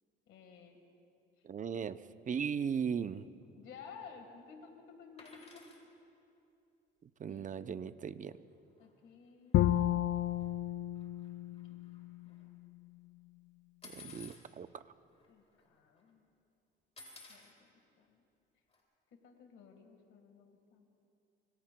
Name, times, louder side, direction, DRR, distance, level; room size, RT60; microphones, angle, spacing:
voice 1, 0.3-0.8 3.5-5.6 7.3-8.0 8.8-9.6 11.7-11.8 12.2-12.4 15.3-16.3 17.3-18.2 19.2-20.9, left 6 dB, 85° left, 3 dB, 1.6 m, -55 dB
voice 2, 1.4-2.0 2.3-3.3 7.0-8.4 13.8-14.8, right 7 dB, 40° right, 13 dB, 0.6 m, -37 dB
sound 1, 5.2-5.8 8.0-8.1 8.3-8.5 8.8-8.9 9.7-9.8 10.3-10.7 10.9-12.4 13.8-14.4 15.2-15.3 15.5-16.0 17.0-17.5 18.7-18.8, left 4 dB, 30° left, 3.7 m, -54 dB
Bowed string instrument, 9.5-12.7, left 13 dB, 70° left, 0.4 m, -32 dB
26.0 x 23.0 x 2.2 m, 2.6 s
cardioid pair, 90°, 20 cm